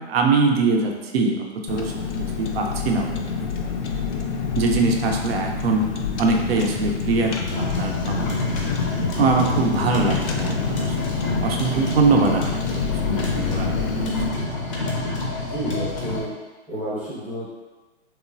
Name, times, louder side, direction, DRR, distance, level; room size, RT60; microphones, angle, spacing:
voice 1, 0.0-1.9 2.4-3.1 4.6-5.9 6.2-8.2 9.2-11.0 11.4-14.5, right 3 dB, 60° right, 2 dB, 0.5 m, -23 dB
Car, 1.7-14.3, left 5 dB, 90° left, 0.5 m, -28 dB
sound 1, 7.5-16.2, left 2 dB, 30° left, 0.5 m, -28 dB
voice 2, 9.4-9.7 15.4-16.3 16.7-17.5, right 1 dB, 5° right, -10 dB, 0.7 m, -30 dB
3.0 x 2.1 x 2.5 m, 1.2 s
hypercardioid pair, 135°, 34 cm